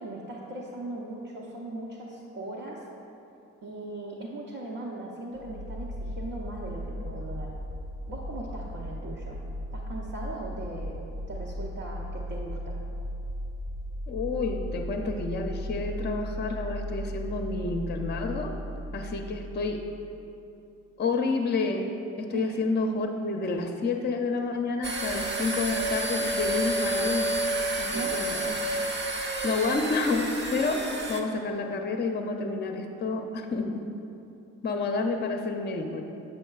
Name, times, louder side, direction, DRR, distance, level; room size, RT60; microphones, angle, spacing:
voice 1, 0.0-2.9 3.6-7.5 8.1-9.4 9.7-12.7 22.3-22.5 27.9-28.2, right 2 dB, 55° right, -5 dB, 0.8 m, -39 dB
sound 1, 5.3-20.1, equal, 85° right, 1.2 m, -36 dB
voice 2, 14.1-18.5 18.9-19.8 21.0-21.9 22.2-27.3 27.8-28.6 29.4-33.8 34.6-36.0, left 3 dB, 25° left, 4 dB, 0.6 m, -29 dB
sound 2, 24.8-31.2, right 1 dB, 25° right, 0.6 m, -30 dB
7.0 x 6.5 x 2.3 m, 2.8 s
hypercardioid pair, 45°, 40 cm